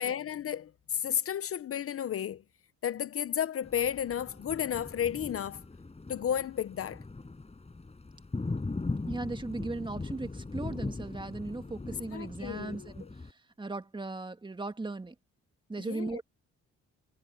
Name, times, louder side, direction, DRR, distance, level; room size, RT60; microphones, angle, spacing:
voice 1, 0.0-2.4 2.8-5.6 6.1-7.0 12.1-12.9 15.8-16.2, left 9 dB, 50° left, 0.7 m, -33 dB
Thunder, 3.6-13.3, left 3 dB, 20° left, 5.4 m, -40 dB
voice 2, 9.1-13.0 13.6-15.1 15.7-16.2, right 3 dB, 15° right, 1.8 m, -37 dB
cardioid pair, 90°, 30 cm